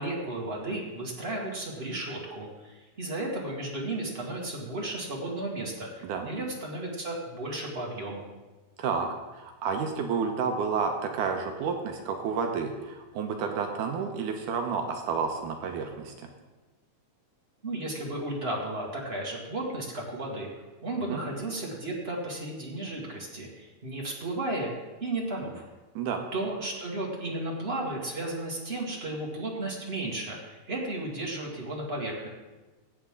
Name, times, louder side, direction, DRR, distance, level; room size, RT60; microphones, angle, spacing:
voice 1, 0.0-8.2 17.6-20.5 20.8-24.7 25.0-25.6 26.3-32.3, right 2 dB, 30° right, -2 dB, 1.2 m, -34 dB
voice 2, 8.8-16.3 21.1-21.2 26.0-26.3, right 5 dB, 80° right, 4 dB, 2.3 m, -30 dB
15.5 x 8.1 x 3.7 m, 1.2 s
omnidirectional pair, 3.8 m